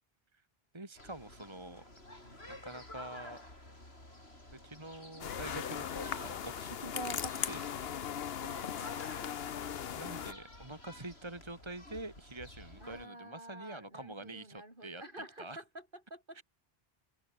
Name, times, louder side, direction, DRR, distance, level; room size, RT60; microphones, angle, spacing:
voice 1, 0.7-2.0 2.5-3.5 4.6-7.9 9.9-15.0 15.4-15.6 16.3-16.4, right 1 dB, 25° right, 2.2 m, -46 dB
sound 1, 0.9-13.1, left 1 dB, 90° left, 7.2 m, -51 dB
sound 2, 5.2-10.3, left 9 dB, 75° left, 1.1 m, -38 dB
voice 2, 8.4-9.1 12.8-16.4, right 1 dB, 55° right, 7.6 m, -50 dB
omnidirectional pair, 1.0 m